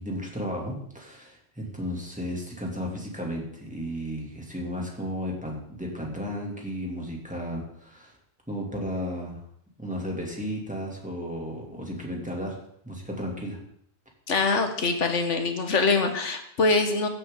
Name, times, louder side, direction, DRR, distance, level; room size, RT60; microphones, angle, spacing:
voice 1, 0.0-8.1 8.5-9.4 9.8-12.6 12.8-13.6, equal, 5° right, -2 dB, 2.6 m, -34 dB
voice 2, 14.3-17.1, left 3 dB, 75° left, 6 dB, 1.7 m, -24 dB
15.5 x 7.7 x 3.8 m, 0.68 s
omnidirectional pair, 1.2 m